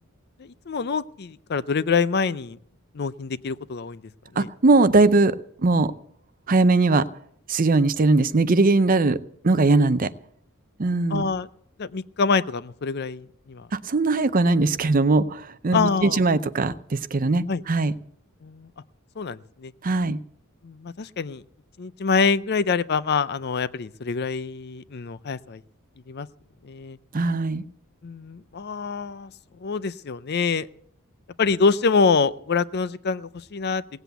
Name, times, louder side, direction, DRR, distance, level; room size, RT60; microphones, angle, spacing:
voice 1, 0.4-2.6 2.9-4.0 4.3-4.5 11.1-11.5 11.8-13.7 15.7-16.2 17.5-17.6 18.4-18.7 19.2-19.7 20.6-21.4 21.8-25.6 26.1-26.3 26.6-27.0 28.0-29.3 29.6-30.7 31.4-33.8, left 5 dB, 45° left, 16 dB, 0.5 m, -25 dB
voice 2, 4.4-5.9 6.5-7.1 7.5-9.2 9.4-10.1 10.8-11.3 13.7-17.9 19.8-20.2 27.1-27.6, right 3 dB, 40° right, 14 dB, 0.6 m, -20 dB
17.5 x 8.1 x 8.1 m, 0.69 s
head